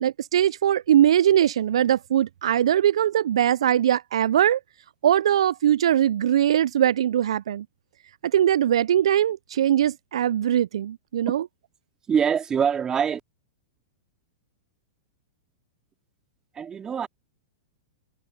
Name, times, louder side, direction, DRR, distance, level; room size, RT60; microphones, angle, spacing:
voice 1, 0.0-4.6 5.0-7.7 8.2-11.4, right 10 dB, 70° right, 0.4 m, -21 dB
voice 2, 12.1-13.2 16.5-17.1, right 7 dB, 20° right, 2.8 m, -24 dB
hypercardioid pair, 105°, 3 cm